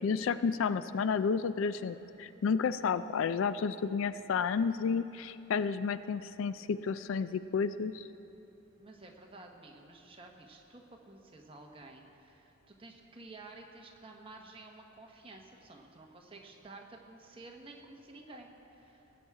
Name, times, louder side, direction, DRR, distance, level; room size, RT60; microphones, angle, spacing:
voice 1, 0.0-8.1, left 5 dB, 65° left, 14 dB, 0.3 m, -31 dB
voice 2, 8.8-19.2, right 2 dB, 25° right, 1 dB, 1.1 m, -52 dB
18.5 x 8.6 x 4.7 m, 2.9 s
head